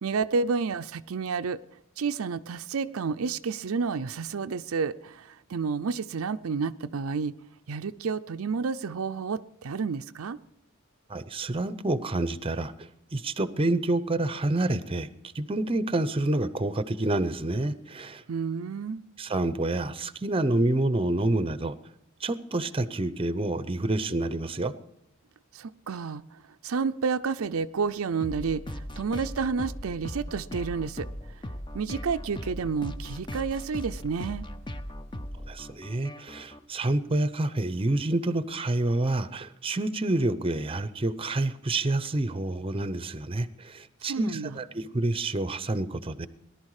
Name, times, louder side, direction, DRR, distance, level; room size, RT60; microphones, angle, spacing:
voice 1, 0.0-1.6 2.0-7.3 7.7-10.4 18.3-19.0 25.5-31.1 31.7-34.5 44.1-44.6, right 5 dB, 85° right, 10 dB, 0.5 m, -30 dB
voice 2, 11.1-12.7 13.1-15.1 15.3-18.2 19.2-21.7 22.2-24.7 35.5-46.3, right 2 dB, 25° right, 14 dB, 0.7 m, -28 dB
sound 1, 28.2-36.6, equal, 25° left, 0.8 m, -38 dB
18.5 x 11.5 x 4.8 m, 0.79 s
head